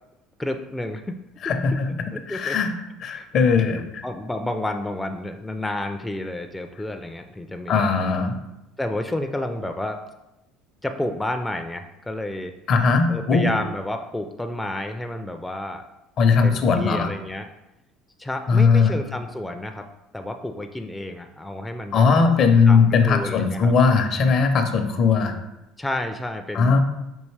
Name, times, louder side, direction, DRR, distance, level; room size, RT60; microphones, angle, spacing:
voice 1, 0.4-1.2 2.1-2.6 3.1-3.3 4.0-7.8 8.8-10.0 10.8-12.5 13.1-15.8 16.4-17.5 18.2-19.9 20.1-22.2 22.7-23.7 25.8-26.8, left 1 dB, 10° left, 5 dB, 0.3 m, -30 dB
voice 2, 1.4-1.9 2.3-2.7 3.0-4.0 7.7-8.4 12.7-13.5 16.2-17.1 18.5-18.9 21.9-25.3 26.5-26.8, left 5 dB, 55° left, 6 dB, 0.6 m, -19 dB
5.4 x 2.7 x 3.2 m, 0.92 s
supercardioid pair, 90°, 0 cm